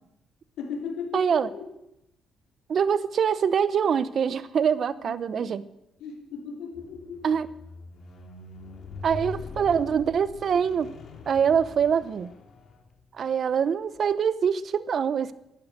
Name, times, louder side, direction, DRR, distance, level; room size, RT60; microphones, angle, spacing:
voice 1, 0.6-1.7 5.0-5.6 6.0-7.2, left 5 dB, 85° left, 2 dB, 3.3 m, -37 dB
voice 2, 1.1-1.5 2.7-5.6 7.2-7.5 9.0-10.9 11.3-12.3 13.1-15.3, right 7 dB, 55° right, 16 dB, 0.8 m, -24 dB
Squeak, 6.7-13.1 13.9-14.0, left 4 dB, 55° left, 2.7 m, -43 dB
12.0 x 11.5 x 8.3 m, 0.87 s
cardioid pair, 90°, 0 cm